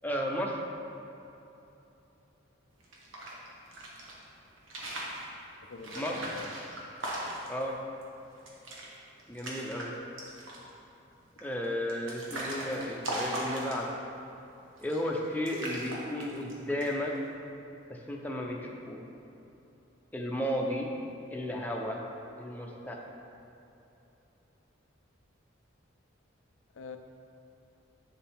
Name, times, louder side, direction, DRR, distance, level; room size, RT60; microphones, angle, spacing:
voice 1, 0.0-0.6 5.9-6.2 7.5-7.7 9.3-9.9 11.4-13.9 14.8-17.1 17.9-19.0 20.1-20.9 21.3-22.0 22.4-23.0, equal, 10° left, -1 dB, 0.7 m, -33 dB
sound 1, 2.8-4.1 4.6-5.2 5.8-7.6 8.0-8.1 8.3-8.9 9.2-9.9 10.2-10.7 11.4-14.1 14.8-15.2 15.4-16.5 16.8-17.2, right 1 dB, 85° right, 1.4 m, -38 dB
voice 2, 5.7-6.5 26.7-27.0, left 5 dB, 85° left, 6 dB, 0.5 m, -44 dB
8.3 x 7.2 x 3.6 m, 2.9 s
head